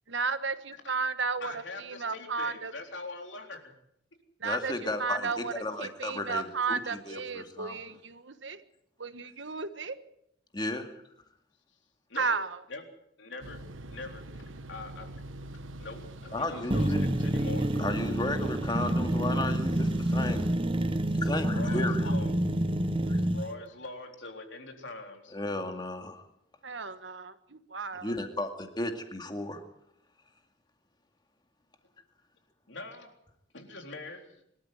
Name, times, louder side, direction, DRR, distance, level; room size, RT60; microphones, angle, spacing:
voice 1, 0.1-2.7 4.4-5.5 5.8-8.6 9.0-10.0 12.2-12.6 26.6-28.1, right 5 dB, 65° right, 11 dB, 1.4 m, -33 dB
voice 2, 1.4-3.7 12.1-12.3 12.7-12.8 13.2-13.6 13.9-14.3 14.7-15.1 15.8-16.9 17.2-17.7 21.5-22.3 23.3-25.4 32.7-33.1 33.5-34.4, left 3 dB, 65° left, 4 dB, 3.7 m, -42 dB
voice 3, 4.4-6.8 7.1-7.8 10.5-10.9 16.3-17.0 17.8-20.4 21.2-22.2 23.1-23.2 25.3-26.2 28.0-29.6, left 2 dB, 20° left, 6 dB, 2.3 m, -34 dB
sound 1, 13.4-20.5, right 1 dB, 85° right, 1.4 m, -45 dB
sound 2, 16.7-23.5, right 1 dB, 25° right, 1.0 m, -28 dB
24.0 x 13.5 x 9.3 m, 0.77 s
head